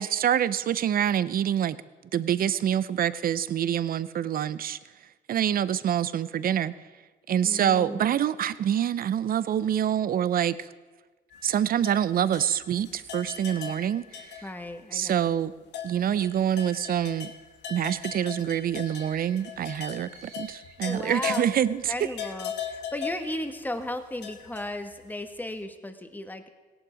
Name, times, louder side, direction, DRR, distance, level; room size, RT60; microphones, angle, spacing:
voice 1, 0.0-1.8 2.1-4.8 5.3-6.7 7.3-10.7 11.4-14.4 14.9-15.5 15.8-17.3 17.7-21.9, right 10 dB, 55° right, 17 dB, 0.6 m, -26 dB
voice 2, 7.4-8.0 14.4-15.3 20.8-26.5, left 1 dB, 10° left, 8 dB, 1.3 m, -35 dB
sound 1, 11.3-14.8 15.0-15.2 15.7-25.3, left 8 dB, 80° left, 1.4 m, -39 dB
sound 2, 17.0-17.4 18.9-19.5 20.1-20.8 21.9-22.5 23.0-23.6, right 5 dB, 85° right, 2.9 m, -51 dB
16.5 x 11.0 x 5.1 m, 1.3 s
cardioid pair, 80°, 18 cm